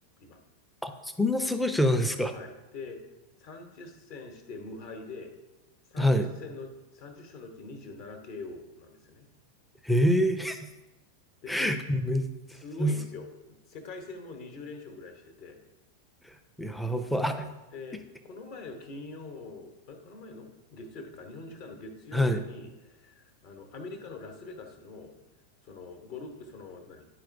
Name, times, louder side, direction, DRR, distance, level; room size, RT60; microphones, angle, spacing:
voice 1, 0.8-2.3 6.0-6.3 9.8-10.7 11.5-12.2 12.8-12.9 16.6-17.4 22.1-22.4, equal, ahead, 8 dB, 0.5 m, -26 dB
voice 2, 2.3-3.0 3.4-5.3 5.9-9.3 11.4-11.7 12.5-13.3 13.7-15.6 17.7-25.1 25.6-27.1, left 3 dB, 45° left, 5 dB, 1.0 m, -44 dB
10.5 x 4.4 x 2.6 m, 1.1 s
figure-of-eight pair, 90°, 0 cm